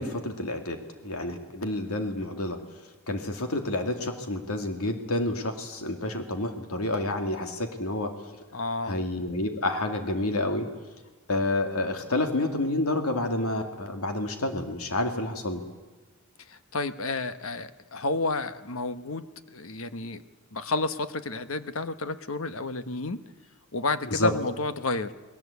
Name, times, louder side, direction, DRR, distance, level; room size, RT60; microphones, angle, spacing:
voice 1, 0.0-2.6 3.1-8.1 8.8-10.7 11.3-15.6 24.1-24.3, left 1 dB, 90° left, 5 dB, 2.5 m, -29 dB
voice 2, 8.5-9.0 16.5-20.2 20.5-23.2 23.7-25.1, left 3 dB, 70° left, 11 dB, 1.3 m, -31 dB
29.0 x 21.5 x 8.4 m, 1.3 s
head